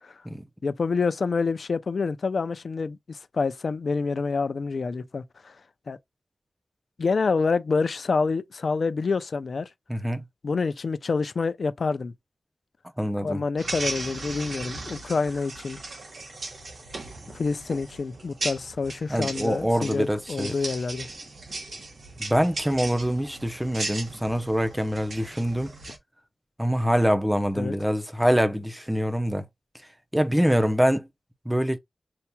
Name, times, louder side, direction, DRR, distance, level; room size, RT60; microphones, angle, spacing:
voice 1, 0.6-5.5 5.9-6.0 7.0-9.7 10.4-12.1 13.2-15.8 17.3-21.1 27.6-27.7, left 4 dB, 65° left, 0.4 m, -27 dB
voice 2, 9.9-10.2 13.0-13.4 19.1-20.5 22.2-25.7 26.6-29.4 30.1-31.1 31.5-31.8, equal, 5° right, 0.7 m, -24 dB
sound 1, 13.6-26.0, right 2 dB, 65° right, 1.2 m, -37 dB
6.7 x 2.9 x 2.2 m
wide cardioid pair, 95°, 0 cm